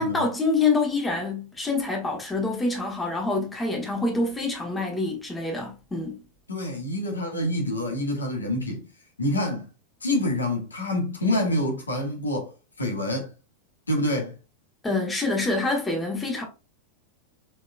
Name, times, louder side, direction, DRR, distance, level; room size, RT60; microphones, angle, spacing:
voice 1, 0.0-6.2 14.8-16.4, left 3 dB, 10° left, 1.4 m, -26 dB
voice 2, 6.5-8.8 9.2-9.7 10.0-12.5 12.8-13.3 13.9-14.3, left 1 dB, 75° left, 1.5 m, -27 dB
6.1 x 3.8 x 2.3 m
figure-of-eight pair, 90°, 0 cm